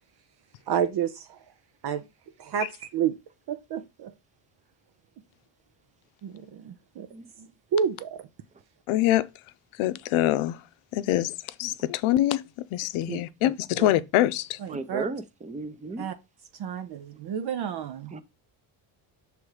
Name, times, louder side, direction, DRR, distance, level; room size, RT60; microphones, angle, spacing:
voice 1, 0.7-1.4 1.8-2.0 2.4-3.2 3.5-4.1 6.2-7.1 7.4-8.3 14.6-15.0 16.0-16.2 16.5-18.1, right 8 dB, 55° right, 0.6 m, -30 dB
voice 2, 8.9-9.3 9.8-10.6 10.9-14.6, left 14 dB, 85° left, 0.6 m, -25 dB
voice 3, 13.1-13.5 13.8-13.9 14.7-16.0 18.1-18.2, right 3 dB, 15° right, 0.7 m, -35 dB
6.2 x 3.3 x 4.8 m
cardioid pair, 95°, 48 cm